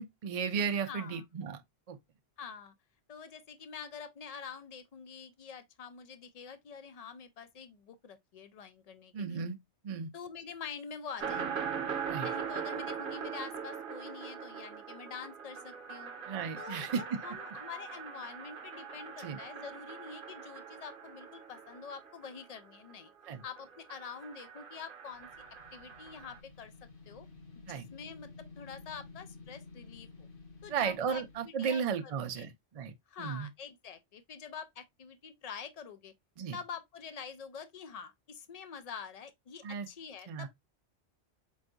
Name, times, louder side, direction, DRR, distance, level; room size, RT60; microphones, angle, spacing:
voice 1, 0.0-1.6 1.9-2.0 9.1-9.6 9.8-10.1 12.0-12.3 16.3-17.0 19.2-19.4 23.3-23.4 27.7-27.9 30.7-32.9 33.2-33.5 36.4-36.6 39.6-39.9 40.3-40.5, right 6 dB, 70° right, 0.3 m, -34 dB
voice 2, 0.9-1.2 2.4-2.7 3.1-9.4 10.1-11.5 12.2-16.1 16.6-23.1 23.4-25.3 25.7-26.7 27.1-27.3 27.5-30.3 30.6-32.5 33.1-36.1 36.5-40.5, left 6 dB, 80° left, 0.3 m, -46 dB
sound 1, 11.2-22.9 23.2-26.4, right 7 dB, 50° right, 0.8 m, -41 dB
sound 2, 25.1-31.5, left 3 dB, 50° left, 1.0 m, -52 dB
4.4 x 3.1 x 2.5 m
omnidirectional pair, 1.2 m